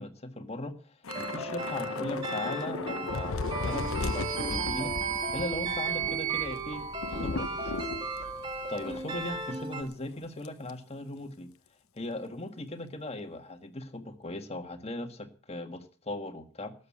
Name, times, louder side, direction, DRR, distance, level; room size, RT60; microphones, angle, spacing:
voice 1, 0.0-7.9 8.7-11.5 11.9-16.7, left 2 dB, 30° left, 6 dB, 1.7 m, -38 dB
Thunder / Rain, 1.0-9.6 9.9-10.1 10.4-10.7, left 3 dB, 70° left, 0.8 m, -37 dB
sound 1, 1.1-9.8, right 1 dB, 20° right, 1.9 m, -36 dB
sound 2, 3.5-7.8, right 10 dB, 80° right, 1.6 m, -35 dB
13.0 x 8.3 x 8.6 m, 0.40 s
head